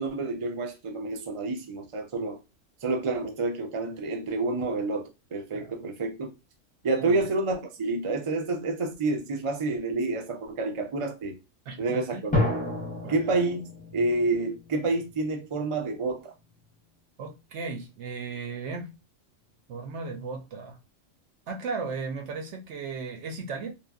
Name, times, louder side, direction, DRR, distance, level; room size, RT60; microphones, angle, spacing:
voice 1, 0.0-2.4 2.8-6.3 6.8-11.4 11.8-12.4 13.1-13.7 13.9-16.3, right 3 dB, 45° right, 0.4 m, -29 dB
voice 2, 11.7-12.2 13.0-13.2 17.2-19.0 19.7-20.8 21.5-23.7, right 4 dB, 70° right, 0.9 m, -36 dB
sound 1, 12.3-15.8, left 2 dB, 10° left, 0.6 m, -31 dB
3.0 x 2.3 x 2.3 m
omnidirectional pair, 1.3 m